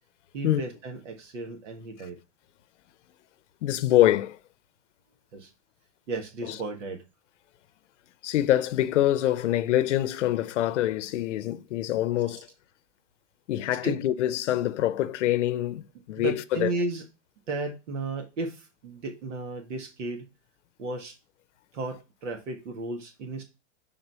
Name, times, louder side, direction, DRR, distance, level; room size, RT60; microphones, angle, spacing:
voice 1, 0.3-2.2 5.3-5.5 6.1-7.0 13.8-13.9 16.2-17.0 17.5-20.2 20.8-21.1 21.7-23.4, right 3 dB, 80° right, 1.7 m, -34 dB
voice 2, 3.6-4.4 6.4-6.6 8.2-12.5 13.5-16.7, left 13 dB, 75° left, 0.7 m, -25 dB
6.1 x 3.8 x 5.4 m
supercardioid pair, 175°, 37 cm